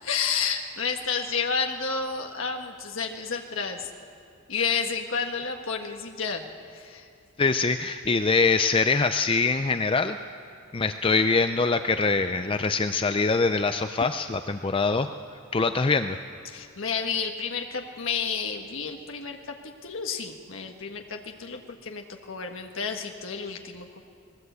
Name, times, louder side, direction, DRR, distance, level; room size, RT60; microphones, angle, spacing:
voice 1, 0.0-3.9 4.5-7.1 16.4-24.0, left 5 dB, 70° left, 3 dB, 1.5 m, -31 dB
voice 2, 7.4-10.2 10.7-15.1 15.5-16.2, left 4 dB, 25° left, 9 dB, 0.5 m, -23 dB
20.0 x 18.0 x 8.1 m, 2.5 s
head